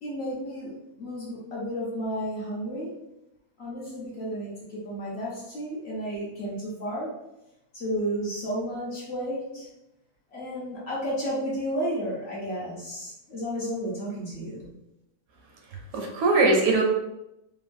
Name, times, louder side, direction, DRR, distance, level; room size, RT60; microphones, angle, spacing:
voice 1, 0.0-2.9 3.6-7.1 7.7-9.7 10.3-14.7, equal, 55° left, -6 dB, 0.8 m, -32 dB
voice 2, 15.7-16.8, right 3 dB, 75° right, 1 dB, 1.0 m, -22 dB
3.1 x 2.2 x 2.5 m, 0.89 s
omnidirectional pair, 1.6 m